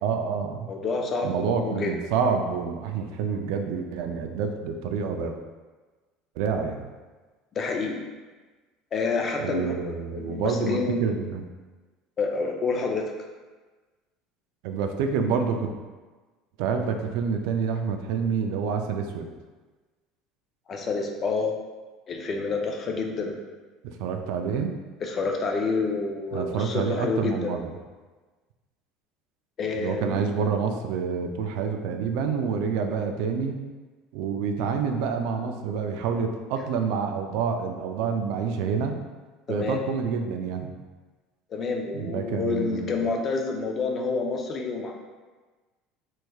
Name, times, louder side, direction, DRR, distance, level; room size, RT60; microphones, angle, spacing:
voice 1, 0.0-0.7 1.2-5.3 6.4-6.9 9.4-11.4 14.6-15.7 16.6-19.3 23.8-24.8 26.3-27.7 29.7-33.6 34.1-39.0 39.5-40.7 41.9-43.0, right 6 dB, 75° right, 5 dB, 0.3 m, -28 dB
voice 2, 0.7-1.9 7.6-8.0 8.9-11.0 12.2-13.0 20.7-21.5 22.1-23.4 25.0-27.5 29.6-30.2 39.5-39.8 41.5-44.9, left 4 dB, 35° left, 2 dB, 0.4 m, -28 dB
3.3 x 3.1 x 2.3 m, 1.3 s
cardioid pair, 130°, 0 cm